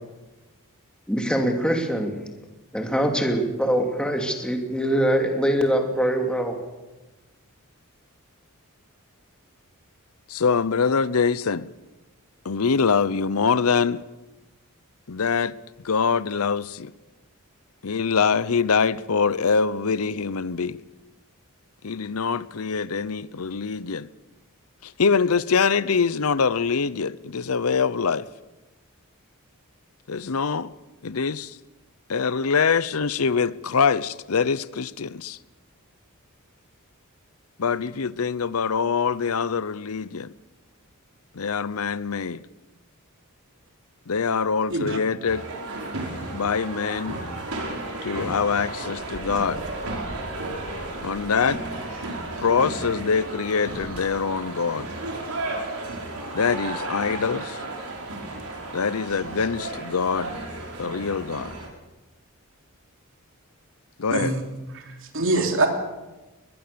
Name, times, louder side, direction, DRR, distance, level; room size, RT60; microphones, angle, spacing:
voice 1, 1.1-2.1 2.7-6.5, equal, 5° left, 2.7 m, -23 dB
voice 2, 10.3-11.7 12.4-14.0 15.1-15.5 15.8-16.9 17.8-20.8 21.8-24.1 24.8-28.3 30.1-30.7 31.0-31.6 32.1-35.4 37.6-40.3 41.3-42.4 44.1-45.4 46.3-47.2 48.0-49.6 51.0-51.6 52.4-54.9 56.3-57.6 58.7-60.3 60.8-61.5 64.0-64.3, left 5 dB, 70° left, 0.7 m, -24 dB
sound 1, 45.3-61.7, right 2 dB, 75° right, 5.2 m, -33 dB
voice 3, 64.1-64.4 64.7-65.7, right 2 dB, 60° right, 3.4 m, -24 dB
22.0 x 21.0 x 6.9 m
head